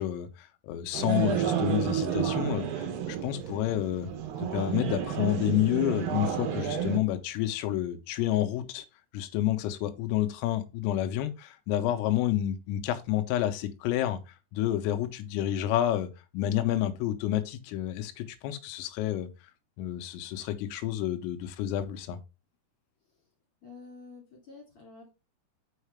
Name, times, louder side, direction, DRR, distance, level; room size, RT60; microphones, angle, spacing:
voice 1, 0.0-4.1 4.4-8.8 9.1-19.3 19.8-22.2, left 12 dB, 90° left, 3.5 m, -29 dB
sound 1, 0.9-7.0, right 9 dB, 80° right, 2.4 m, -31 dB
voice 2, 23.6-25.1, left 4 dB, 35° left, 3.0 m, -49 dB
7.4 x 5.7 x 3.3 m
omnidirectional pair, 5.9 m